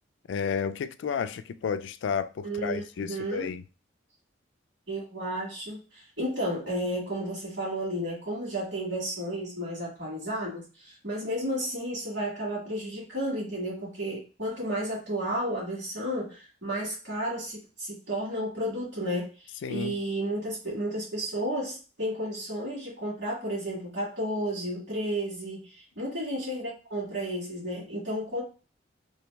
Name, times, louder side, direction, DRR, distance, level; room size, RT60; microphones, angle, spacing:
voice 1, 0.3-3.6 19.6-20.0, left 6 dB, 75° left, 0.3 m, -31 dB
voice 2, 2.4-3.5 4.9-28.4, equal, 65° right, 2.1 m, -32 dB
3.3 x 3.1 x 3.2 m
head